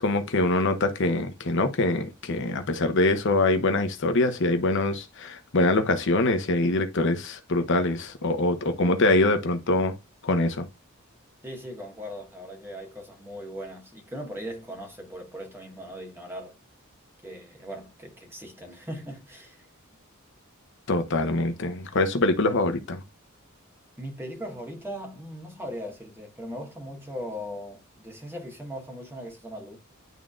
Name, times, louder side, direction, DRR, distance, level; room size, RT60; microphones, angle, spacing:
voice 1, 0.0-9.9 10.2-10.7 20.9-23.0, left 2 dB, 60° left, 0.9 m, -24 dB
voice 2, 11.4-16.5 17.2-19.6 24.0-29.8, equal, 10° right, 1.6 m, -39 dB
11.0 x 3.7 x 2.4 m
head